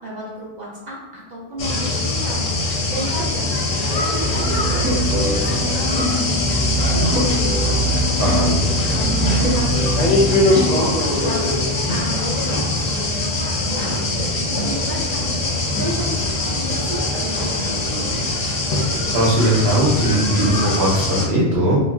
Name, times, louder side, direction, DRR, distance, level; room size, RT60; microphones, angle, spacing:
voice 1, 0.0-2.5 2.9-7.8 8.3-10.8 11.2-15.3 15.8-18.3, right 1 dB, 55° right, -5 dB, 0.6 m, -32 dB
sound 1, 1.6-21.3, left 2 dB, 50° left, 0.5 m, -22 dB
sound 2, 4.2-10.6, right 1 dB, 15° right, 0.6 m, -23 dB
voice 2, 8.2-8.6 19.1-21.8, right 1 dB, 85° right, -7 dB, 1.0 m, -19 dB
2.4 x 2.0 x 3.5 m, 1.1 s
omnidirectional pair, 1.1 m